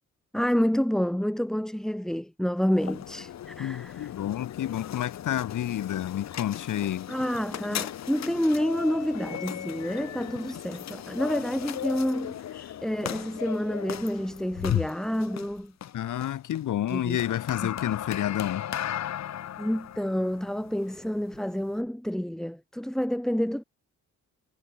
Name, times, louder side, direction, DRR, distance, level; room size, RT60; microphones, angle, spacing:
voice 1, 0.3-4.1 7.1-15.7 16.9-17.2 17.6-17.7 19.6-23.6, equal, ahead, 1.2 m, -29 dB
sound 1, 2.7-21.8, left 11 dB, 60° left, 1.0 m, -36 dB
voice 2, 3.6-7.1 15.9-18.7, left 11 dB, 80° left, 1.7 m, -30 dB
wide cardioid pair, 165°, 31 cm